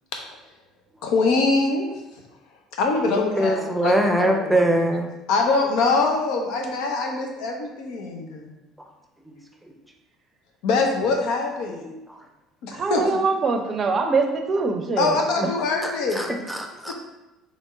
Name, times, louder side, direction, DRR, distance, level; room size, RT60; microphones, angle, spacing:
voice 1, 1.0-1.9 2.8-4.6 5.3-8.5 10.6-11.9 12.6-13.0 15.0-16.3 16.8-16.9, left 3 dB, 65° left, 2 dB, 0.7 m, -23 dB
voice 2, 3.4-5.1 15.4-15.5 15.8-16.9, right 1 dB, 5° right, 2 dB, 0.7 m, -22 dB
voice 3, 12.7-15.2, right 4 dB, 40° right, 5 dB, 0.6 m, -23 dB
3.6 x 3.1 x 3.8 m, 1.0 s
hypercardioid pair, 60°, 0 cm